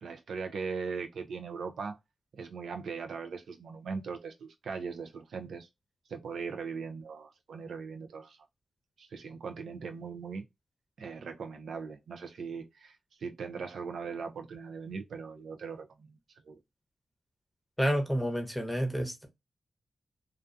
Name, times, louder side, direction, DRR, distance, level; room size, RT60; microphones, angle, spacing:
voice 1, 0.0-2.0 2.3-5.7 6.1-8.4 9.0-10.4 11.0-16.2 16.5-16.6, right 5 dB, 80° right, 0.4 m, -39 dB
voice 2, 17.8-19.3, equal, 5° left, 0.8 m, -29 dB
2.3 x 2.3 x 2.5 m
cardioid pair, 60°, 0 cm